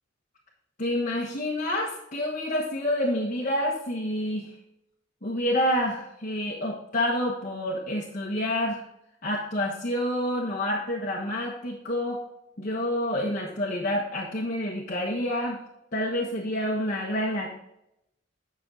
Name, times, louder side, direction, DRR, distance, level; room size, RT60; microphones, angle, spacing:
voice 1, 0.8-4.5 5.2-8.8 9.2-12.2 12.6-15.6 15.9-17.6, left 1 dB, 45° left, -4 dB, 1.3 m, -28 dB
9.9 x 6.4 x 3.9 m, 0.82 s
head